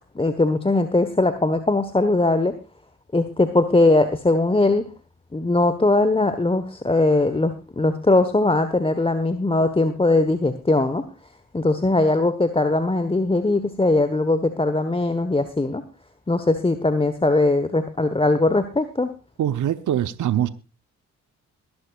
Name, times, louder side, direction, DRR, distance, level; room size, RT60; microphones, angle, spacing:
voice 1, 0.1-2.5 3.1-4.9 5.3-11.0 11.5-15.8 16.3-19.1, left 2 dB, 15° left, 10 dB, 1.3 m, -20 dB
voice 2, 19.4-20.5, right 11 dB, 65° right, 12 dB, 1.0 m, -23 dB
22.5 x 11.5 x 2.5 m, 0.30 s
supercardioid pair, 55°, 33 cm